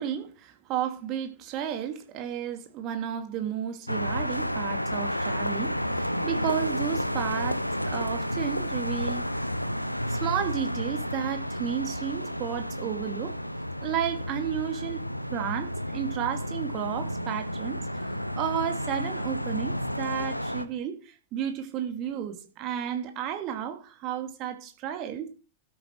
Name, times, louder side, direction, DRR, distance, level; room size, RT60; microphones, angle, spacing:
voice 1, 0.0-9.4 10.1-13.4 13.8-15.0 15.3-25.3, right 9 dB, 40° right, 2.5 m, -33 dB
sound 1, 3.9-20.6, equal, 90° left, 0.8 m, -31 dB
12.5 x 9.6 x 4.7 m
figure-of-eight pair, 90°, 0 cm